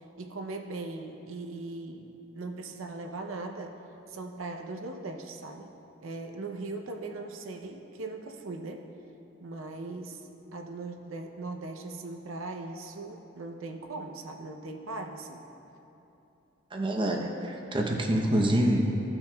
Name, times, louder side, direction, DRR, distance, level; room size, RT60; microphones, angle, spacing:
voice 1, 0.0-3.8 4.1-5.7 6.0-8.8 9.4-10.2 10.5-15.4, right 3 dB, 85° right, 3 dB, 0.6 m, -39 dB
voice 2, 16.7-18.8, right 1 dB, 25° right, 0 dB, 0.7 m, -26 dB
15.0 x 5.9 x 2.3 m, 2.9 s
head